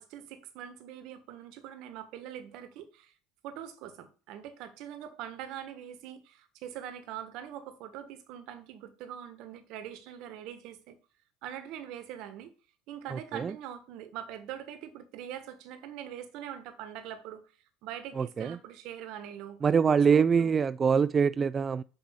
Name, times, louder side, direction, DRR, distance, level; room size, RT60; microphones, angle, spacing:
voice 1, 0.0-3.1 3.4-11.0 11.4-12.5 12.9-17.4 17.8-19.6 19.9-20.5, right 10 dB, 65° right, 1.4 m, -43 dB
voice 2, 13.1-13.5 18.2-18.6 19.6-21.8, right 6 dB, 30° right, 0.3 m, -24 dB
6.6 x 5.6 x 5.7 m
supercardioid pair, 100°, 0 cm